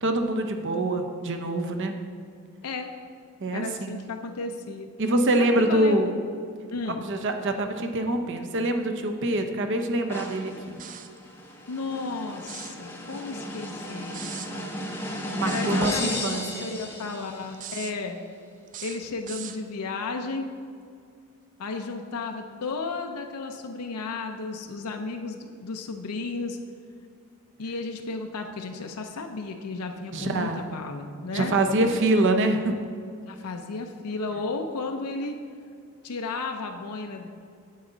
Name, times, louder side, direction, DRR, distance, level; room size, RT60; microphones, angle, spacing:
voice 1, 0.0-1.9 3.4-4.0 5.0-6.1 7.0-10.8 15.4-16.7 30.1-30.7 31.3-32.7, right 1 dB, 55° right, 5 dB, 0.8 m, -25 dB
voice 2, 3.5-4.9 5.4-6.0 6.7-7.1 11.7-14.6 15.4-18.2 18.8-20.5 21.6-26.6 27.6-31.5 33.2-35.4 36.0-37.3, left 3 dB, 85° left, 4 dB, 0.6 m, -33 dB
sound 1, 10.1-17.7, equal, 10° left, 0.8 m, -34 dB
sound 2, 10.8-11.2 12.4-12.8 14.1-14.5 15.5-16.4 17.5-18.0 18.7-19.6, right 9 dB, 35° right, 0.4 m, -40 dB
9.4 x 8.2 x 3.9 m, 2.3 s
head